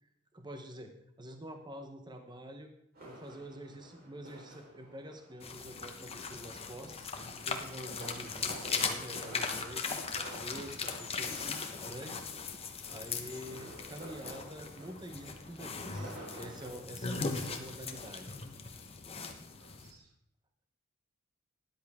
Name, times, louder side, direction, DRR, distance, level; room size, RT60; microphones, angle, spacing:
voice 1, 0.0-0.9 1.2-2.7 3.1-7.1 7.4-9.9 10.3-12.2 12.9-18.4, equal, 20° right, 5 dB, 0.9 m, -47 dB
sound 1, 2.9-16.7, right 1 dB, 45° right, 4.1 m, -52 dB
sound 2, 5.4-19.9, left 4 dB, 25° left, 1.0 m, -39 dB
voice 2, 17.1-17.6 19.5-20.2, right 4 dB, 80° right, 2 dB, 2.3 m, -62 dB
13.0 x 10.5 x 3.5 m, 0.78 s
head